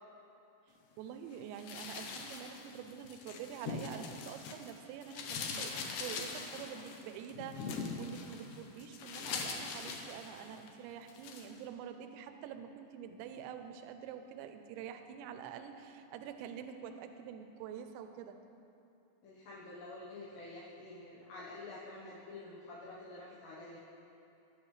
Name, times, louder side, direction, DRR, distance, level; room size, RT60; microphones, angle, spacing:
voice 1, 1.0-18.4, right 8 dB, 80° right, 7 dB, 2.9 m, -46 dB
sound 1, 1.6-4.7 5.0-10.7 11.1-11.5, left 5 dB, 90° left, 1.9 m, -42 dB
voice 2, 19.2-23.8, left 2 dB, 70° left, -6 dB, 3.2 m, -48 dB
21.5 x 9.9 x 3.3 m, 2.8 s
omnidirectional pair, 5.3 m